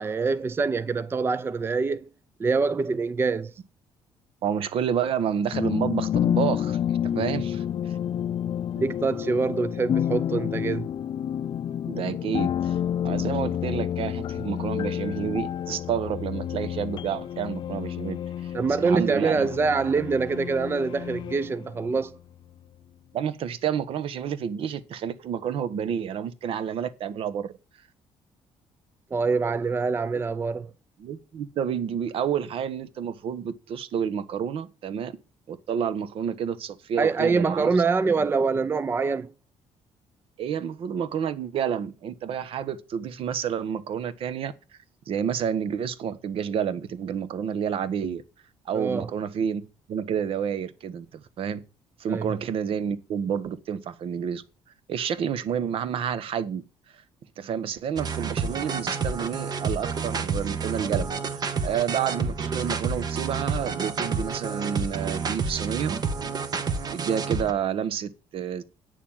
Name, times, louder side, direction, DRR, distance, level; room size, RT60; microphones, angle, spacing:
voice 1, 0.0-2.1 2.4-3.5 8.8-10.9 18.5-22.2 29.1-30.7 37.0-39.3 48.7-49.1 52.1-52.3, right 4 dB, 20° right, 0.5 m, -25 dB
voice 2, 4.4-8.0 11.9-12.8 13.0-18.2 18.7-19.5 23.1-27.5 31.0-35.2 35.5-37.7 40.4-44.5 45.1-48.2 48.6-51.6 52.0-54.4 54.9-56.6 57.4-66.0 66.7-68.6, right 8 dB, 60° right, 1.2 m, -29 dB
sound 1, 5.5-22.1, left 10 dB, 45° left, 0.5 m, -29 dB
sound 2, 58.0-67.5, right 5 dB, 40° right, 1.3 m, -29 dB
9.3 x 6.7 x 7.3 m
cardioid pair, 130°, 11 cm